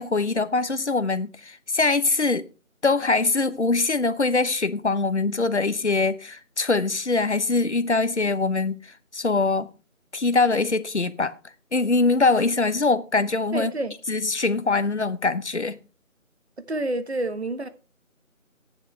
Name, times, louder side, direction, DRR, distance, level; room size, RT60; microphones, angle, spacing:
voice 1, 0.0-2.5 2.8-8.8 9.1-9.7 10.1-11.3 11.7-13.7 14.1-15.8, left 3 dB, 55° left, 1.0 m, -23 dB
voice 2, 13.5-13.9 16.7-17.7, right 2 dB, 50° right, 1.3 m, -28 dB
14.0 x 10.5 x 3.2 m
figure-of-eight pair, 175°, 41 cm